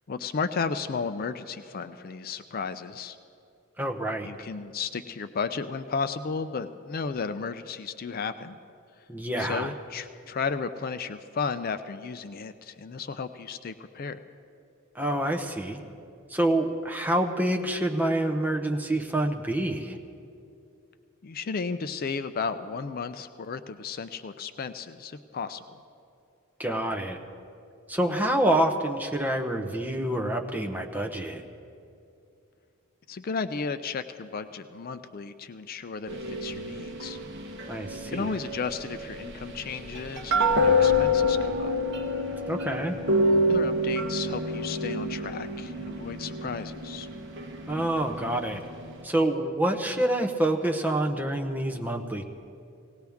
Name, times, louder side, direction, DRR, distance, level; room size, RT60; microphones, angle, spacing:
voice 1, 0.1-3.2 4.2-8.6 9.4-14.2 21.2-25.6 33.1-37.2 38.1-41.7 43.5-47.1, left 5 dB, 40° left, 10 dB, 0.4 m, -34 dB
voice 2, 3.8-4.3 9.1-9.7 14.9-15.8 16.3-20.0 26.6-27.2 27.9-31.4 37.7-38.3 42.5-43.0 47.7-48.6 49.0-52.2, right 1 dB, 10° right, 2 dB, 0.8 m, -27 dB
sound 1, 36.1-49.0, left 1 dB, 50° right, 1.1 m, -28 dB
18.0 x 18.0 x 3.5 m, 2.5 s
head